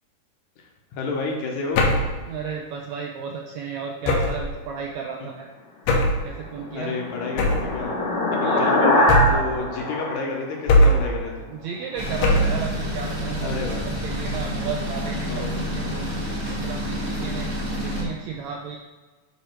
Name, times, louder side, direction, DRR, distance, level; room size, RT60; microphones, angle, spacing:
voice 1, 0.6-2.1 5.2-5.3 6.7-8.2 8.6-11.5 13.4-13.9 15.3-15.6, left 3 dB, 70° left, 0 dB, 2.0 m, -30 dB
sound 1, 1.8-2.2 4.1-4.5 5.9-6.3 7.4-7.8 9.1-9.5 10.7-11.2 12.2-12.6, left 1 dB, 85° left, 2.5 m, -19 dB
voice 2, 2.3-5.5 6.2-7.0 8.4-8.8 11.5-13.6 13.8-17.5 17.8-18.8, right 6 dB, 85° right, 1 dB, 1.6 m, -34 dB
sound 2, 6.3-11.1, left 1 dB, 45° left, 1.5 m, -23 dB
sound 3, 12.0-18.0, equal, 25° right, 1.3 m, -28 dB
9.7 x 3.5 x 4.4 m, 1.3 s
omnidirectional pair, 3.8 m